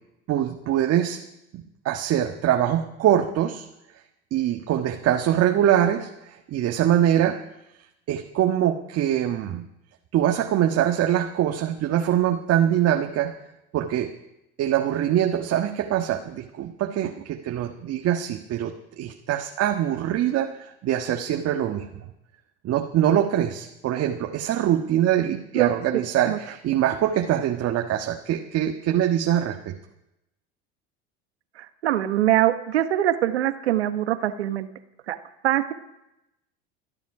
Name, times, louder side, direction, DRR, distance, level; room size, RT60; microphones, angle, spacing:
voice 1, 0.3-1.2 1.5-3.6 4.3-7.4 8.1-9.6 10.1-13.3 13.7-14.1 14.6-21.9 22.6-29.7, right 11 dB, 50° right, 3 dB, 1.5 m, -23 dB
voice 2, 25.5-26.4 31.8-34.7 35.1-35.2 35.4-35.7, right 12 dB, 90° right, 10 dB, 1.2 m, -23 dB
27.5 x 10.5 x 4.9 m, 0.88 s
hypercardioid pair, 85°, 32 cm